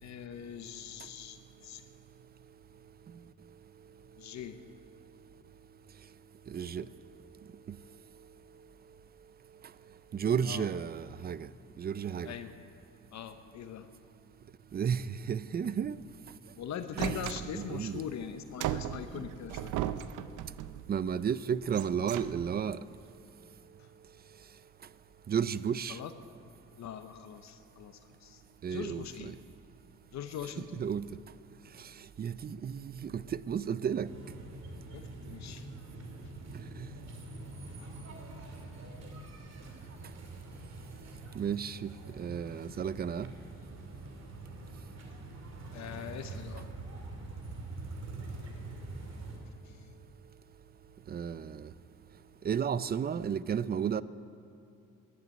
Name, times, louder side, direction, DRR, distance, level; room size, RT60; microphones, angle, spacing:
voice 1, 0.0-1.8 4.2-4.6 10.4-10.7 12.2-12.5 13.1-13.9 16.5-19.7 23.8-23.9 25.9-26.1 26.8-28.4 28.7-29.3 30.1-30.8 34.9-35.7 45.7-46.7 49.5-49.9, left 9 dB, 65° left, 0.8 m, -42 dB
voice 2, 6.5-6.9 7.7-7.8 10.1-11.5 11.8-12.3 14.7-16.0 17.0-18.0 20.9-22.8 25.3-26.0 28.6-29.3 30.7-31.1 32.2-34.1 36.8-36.9 41.3-43.3 51.1-51.7 52.4-54.0, right 7 dB, 30° right, 0.5 m, -33 dB
sound 1, 17.0-17.9 18.6-20.9 21.6-22.7, right 11 dB, 85° right, 0.6 m, -37 dB
sound 2, 34.0-49.4, right 2 dB, 60° right, 2.6 m, -45 dB
11.5 x 10.5 x 9.3 m
cardioid pair, 90°, 30 cm